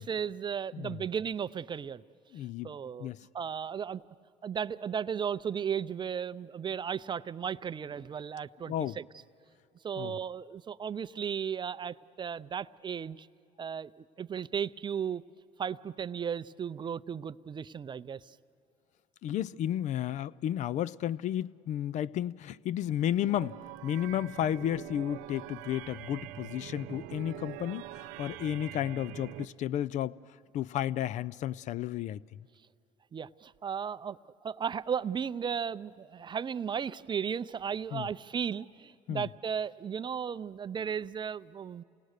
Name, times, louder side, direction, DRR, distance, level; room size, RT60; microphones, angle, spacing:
voice 1, 0.0-2.0 2.6-4.0 4.4-9.0 9.8-13.3 13.6-13.9 14.2-15.2 15.6-18.2 33.1-34.2 34.4-41.8, right 7 dB, 30° right, 15 dB, 0.5 m, -35 dB
voice 2, 2.3-2.7 3.0-3.2 8.7-9.0 10.0-10.2 19.2-30.2 30.5-32.2 37.9-38.1 39.1-39.3, left 11 dB, 55° left, 19 dB, 0.5 m, -32 dB
sound 1, 23.2-29.5, right 14 dB, 75° right, 0.6 m, -44 dB
27.5 x 18.5 x 6.6 m, 2.6 s
supercardioid pair, 75°, 14 cm